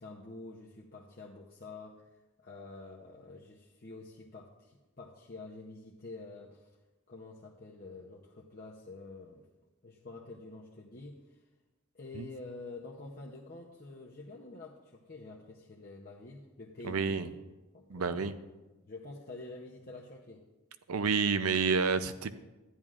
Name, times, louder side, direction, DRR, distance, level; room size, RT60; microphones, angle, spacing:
voice 1, 0.0-2.1 2.4-6.8 7.1-9.4 9.8-11.4 11.9-17.4 17.7-18.3 18.8-20.5, left 3 dB, 40° left, -3 dB, 0.7 m, -48 dB
voice 2, 16.8-17.3 17.9-18.3 20.9-22.4, right 5 dB, 80° right, 12 dB, 0.5 m, -29 dB
13.0 x 10.5 x 2.5 m, 1.1 s
head